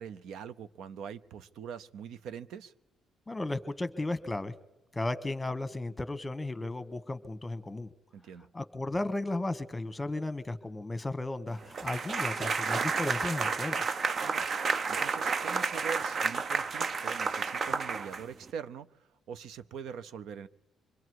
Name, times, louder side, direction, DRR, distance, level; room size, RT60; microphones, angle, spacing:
voice 1, 0.0-2.7 8.1-8.5 14.2-14.5 14.9-20.5, right 7 dB, 80° right, 14 dB, 0.7 m, -43 dB
voice 2, 3.3-4.5 4.9-7.9 8.5-13.8, left 2 dB, 15° left, 13 dB, 1.2 m, -34 dB
sound 1, 11.7-18.5, right 5 dB, 45° right, 0.6 m, -31 dB
25.5 x 22.5 x 4.8 m, 1.0 s
cardioid pair, 90°, 0 cm